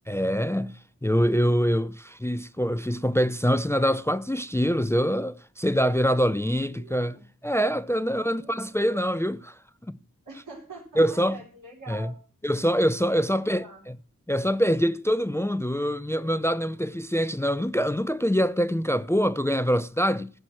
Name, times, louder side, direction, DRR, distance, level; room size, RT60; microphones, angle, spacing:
voice 1, 0.1-9.6 9.9-10.0 11.0-11.4 11.9-12.1 12.4-14.0 14.3-20.3, equal, 10° left, 0.5 m, -25 dB
voice 2, 6.4-7.2 7.9-8.6 8.8-9.0 10.2-12.2 13.1-13.8 19.2-19.3, right 2 dB, 85° right, 4.8 m, -45 dB
15.0 x 6.2 x 6.2 m
cardioid pair, 50°, 31 cm